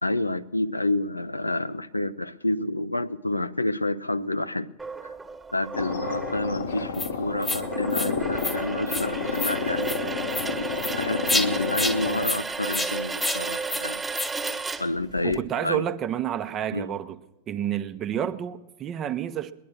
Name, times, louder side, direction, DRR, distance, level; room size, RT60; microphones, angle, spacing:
voice 1, 0.0-4.7 5.0-5.1 5.5-10.0 11.0-14.0 14.8-15.9 16.7-16.9, left 2 dB, 85° left, 0.4 m, -29 dB
sound 1, 4.8-15.4, right 4 dB, 10° right, 1.4 m, -33 dB
sound 2, 5.7-12.3, left 5 dB, 65° left, 0.9 m, -31 dB
sound 3, 6.9-7.1 7.4-7.6 7.9-8.1 8.4-8.6 8.9-9.1 9.3-9.6 9.8-10.0 10.3-10.5 10.8-10.9 11.3-11.5 11.7-12.0 12.2-12.4 12.7-12.9 13.2-13.4 13.7-13.8 14.1-14.3, left 2 dB, 15° left, 0.9 m, -28 dB
voice 2, 15.2-17.2 17.5-19.5, right 10 dB, 30° right, 0.7 m, -29 dB
20.0 x 11.0 x 6.4 m
figure-of-eight pair, 90°, 0 cm